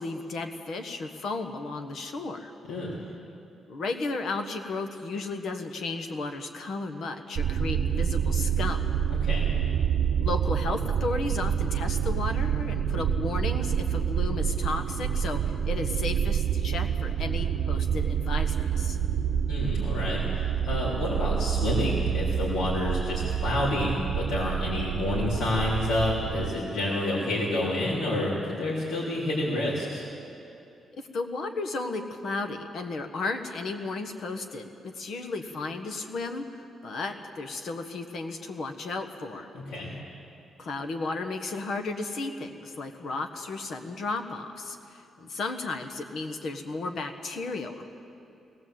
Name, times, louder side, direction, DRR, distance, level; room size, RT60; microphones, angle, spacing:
voice 1, 0.0-2.5 3.7-8.9 10.2-19.0 31.0-39.5 40.6-47.9, left 3 dB, 55° left, 6 dB, 1.4 m, -34 dB
sound 1, 7.4-26.5, right 8 dB, 65° right, 0.8 m, -27 dB
voice 2, 9.1-9.5 19.5-30.1 39.5-39.9, left 1 dB, 85° left, -6 dB, 3.5 m, -29 dB
19.0 x 18.5 x 7.7 m, 2.7 s
cardioid pair, 160°, 0 cm